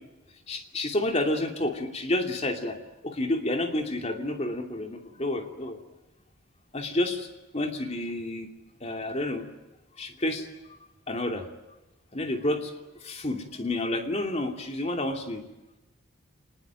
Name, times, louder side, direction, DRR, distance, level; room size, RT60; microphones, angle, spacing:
voice 1, 0.5-2.8 3.0-5.8 6.7-7.3 7.5-8.5 8.8-9.5 10.0-10.5 11.1-11.5 12.1-12.7 13.0-15.4, left 1 dB, 30° left, 4 dB, 2.8 m, -29 dB
26.0 x 20.5 x 9.0 m, 1.0 s
head